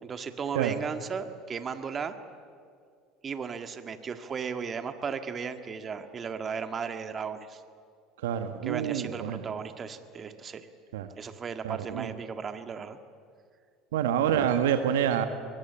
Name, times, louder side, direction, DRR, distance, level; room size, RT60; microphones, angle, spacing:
voice 1, 0.0-2.1 3.2-7.6 8.6-10.7 11.2-13.0, right 6 dB, 35° right, 9 dB, 1.8 m, -35 dB
voice 2, 8.2-9.4 10.9-11.1 11.6-12.1 13.9-15.3, right 9 dB, 75° right, 9 dB, 1.4 m, -27 dB
23.5 x 22.5 x 8.9 m, 2.2 s
hypercardioid pair, 75°, 0 cm